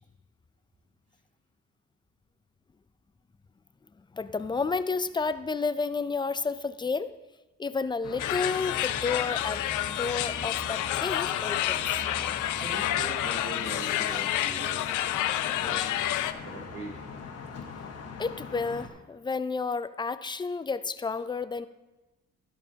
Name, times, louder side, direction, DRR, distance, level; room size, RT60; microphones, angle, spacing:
voice 1, 4.1-7.1 7.6-9.6 10.0-11.8 18.2-21.7, left 4 dB, 15° left, 13 dB, 0.4 m, -31 dB
sound 1, 8.0-18.9, left 4 dB, 55° left, 1.4 m, -41 dB
sound 2, 8.2-16.3, left 13 dB, 85° left, 0.5 m, -29 dB
voice 2, 12.6-14.9 15.4-15.9 16.4-17.0, right 2 dB, 75° right, -5 dB, 3.6 m, -41 dB
12.0 x 11.5 x 2.8 m, 1.1 s
cardioid pair, 90°, 30 cm